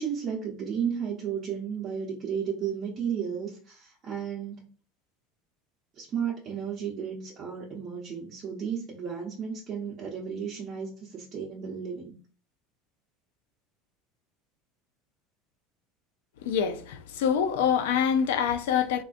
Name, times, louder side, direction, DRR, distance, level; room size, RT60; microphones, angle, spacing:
voice 1, 0.0-4.6 6.0-12.1, right 7 dB, 35° right, 0.7 m, -33 dB
voice 2, 16.4-19.0, left 8 dB, 85° left, 0.4 m, -25 dB
3.6 x 2.5 x 2.4 m
supercardioid pair, 125°, 0 cm